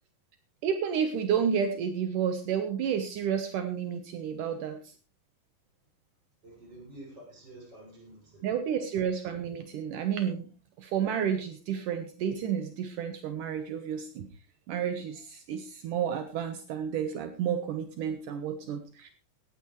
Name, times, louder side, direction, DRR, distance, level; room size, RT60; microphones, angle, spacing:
voice 1, 0.6-4.8 8.4-10.5 10.8-14.3 14.7-19.1, right 8 dB, 70° right, 7 dB, 2.6 m, -31 dB
voice 2, 6.4-8.5, right 1 dB, 30° right, -1 dB, 7.0 m, -49 dB
18.0 x 12.5 x 3.2 m, 0.36 s
omnidirectional pair, 3.9 m